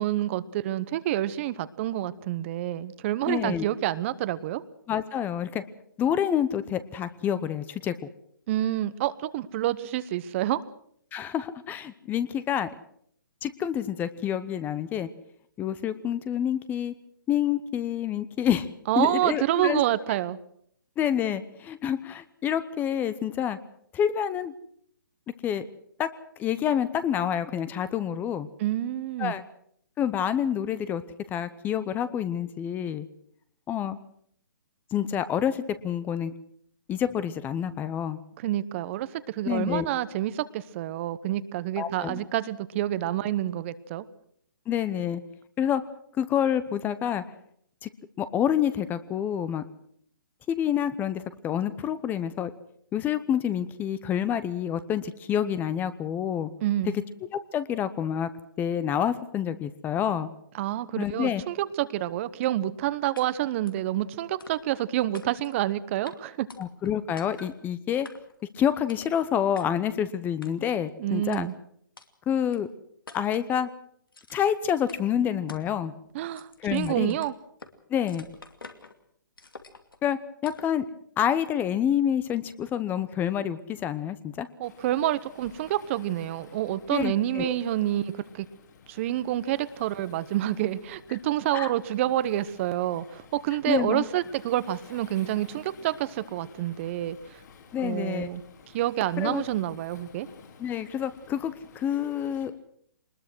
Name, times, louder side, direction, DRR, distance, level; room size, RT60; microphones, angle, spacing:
voice 1, 0.0-4.6 8.5-10.6 18.9-20.4 28.6-29.3 38.4-44.0 56.6-56.9 60.5-66.5 71.0-71.5 76.1-77.3 84.6-88.5 88.9-97.4 97.8-98.4 98.7-100.3, right 13 dB, 35° right, 15 dB, 1.0 m, -28 dB
voice 2, 3.3-3.6 4.9-5.6 6.0-7.9 11.1-12.7 13.4-15.1 15.6-16.9 17.3-18.7 19.0-19.8 21.0-23.6 23.9-24.5 25.4-25.7 26.0-26.1 26.4-28.5 29.2-29.4 30.0-31.0 31.3-33.1 33.7-34.0 34.9-36.3 36.9-38.2 39.4-39.9 41.8-42.2 44.7-45.2 45.6-45.8 46.2-47.2 47.8-47.9 48.2-49.6 50.5-52.5 52.9-56.5 56.9-57.0 57.3-58.3 58.6-60.3 61.0-61.4 66.6-68.1 68.5-71.5 72.3-72.7 73.1-73.7 74.3-75.9 76.6-77.2 77.9-78.2 80.0-80.9 81.2-84.5 86.9-87.6 91.5-91.7 93.7-94.0 97.7-98.3 99.2-99.4 100.6-102.5, left 9 dB, 15° left, 14 dB, 0.9 m, -28 dB
sound 1, 63.2-63.3 63.7-63.9 64.4-64.8 65.1-65.6 66.1-66.2 66.5-66.9 67.2-67.6 68.0-68.4 68.9-69.1 69.6-69.7 70.4-70.8 71.3-71.4 72.0-72.1 72.5-72.6 73.1-73.5 74.1-74.6 74.9-75.0 75.5-75.7 76.1-77.7 78.1-79.0 79.4-80.0 80.4-80.8, left 4 dB, 85° left, 2.5 m, -48 dB
Waves surf, 84.6-102.5, left 6 dB, 55° left, 3.7 m, -53 dB
22.5 x 20.5 x 6.2 m, 0.66 s
hypercardioid pair, 140°, 11 cm